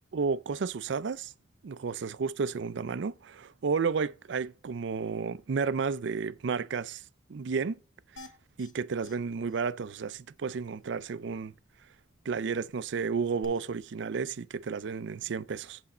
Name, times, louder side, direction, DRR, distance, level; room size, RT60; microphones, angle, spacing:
voice 1, 0.1-1.3 1.6-7.0 7.3-7.8 8.6-11.5 12.3-15.8, right 5 dB, 65° right, 0.4 m, -32 dB
sound 1, 8.2-8.7 9.0-9.2 9.5-9.6 9.9-10.0 13.4-13.5, left 2 dB, 90° left, 1.1 m, -49 dB
8.0 x 6.1 x 4.2 m
head